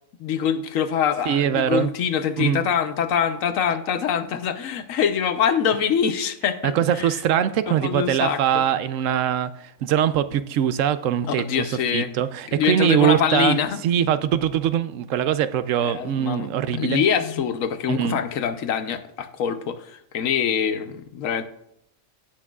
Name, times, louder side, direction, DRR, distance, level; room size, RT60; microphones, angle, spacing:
voice 1, 0.2-7.2 7.7-8.6 11.3-12.1 12.5-13.8 15.8-21.4, left 8 dB, 80° left, 10 dB, 1.2 m, -24 dB
voice 2, 1.3-1.9 2.4-2.6 6.7-11.7 11.9-17.0 17.9-18.2, right 10 dB, 75° right, 13 dB, 0.9 m, -22 dB
16.5 x 6.1 x 2.3 m, 0.76 s
omnidirectional pair, 1.4 m